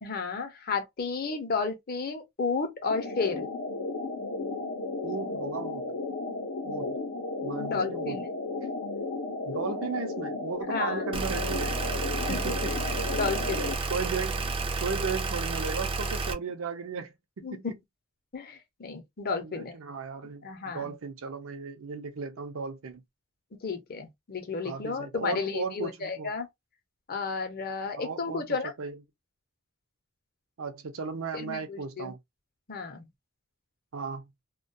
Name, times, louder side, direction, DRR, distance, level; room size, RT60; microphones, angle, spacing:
voice 1, 0.0-3.4 7.6-8.3 10.7-11.0 12.3-12.5 12.9-13.8 17.4-17.7 18.3-19.8 20.4-20.9 23.6-26.5 27.1-28.7 31.3-32.1 32.7-33.1, left 4 dB, 45° left, 0.6 m, -32 dB
sound 1, 2.9-13.8, left 3 dB, 85° left, 0.7 m, -34 dB
voice 2, 5.0-6.0 6.6-7.0 7.4-8.2 9.4-11.8 12.3-12.8 13.5-17.7 19.4-23.0 24.6-26.3 28.0-29.0 30.6-32.2 33.9-34.3, right 5 dB, 75° right, 0.5 m, -36 dB
sound 2, 11.1-16.3, right 3 dB, 25° right, 0.3 m, -31 dB
2.2 x 2.2 x 2.6 m
head